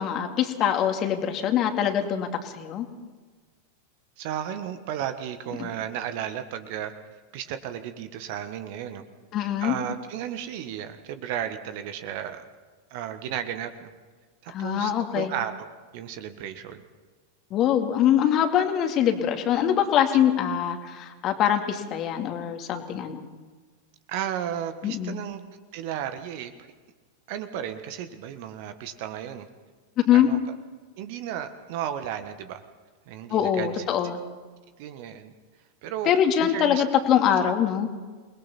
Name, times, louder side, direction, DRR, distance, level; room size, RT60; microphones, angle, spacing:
voice 1, 0.0-2.9 5.6-5.7 9.3-9.7 14.5-15.3 17.5-23.3 24.8-25.2 30.0-30.3 33.3-34.2 36.1-37.9, left 9 dB, 35° left, 5 dB, 2.3 m, -23 dB
voice 2, 4.2-6.9 7.3-9.1 9.6-12.4 12.9-13.9 14.4-15.5 15.9-16.8 24.1-25.4 25.7-26.5 27.3-29.5 30.1-30.4 31.0-32.6 33.1-33.8 34.8-35.3 35.8-36.1 36.5-36.8, right 10 dB, 50° right, 9 dB, 1.5 m, -34 dB
28.5 x 21.0 x 4.4 m, 1.4 s
figure-of-eight pair, 90°, 0 cm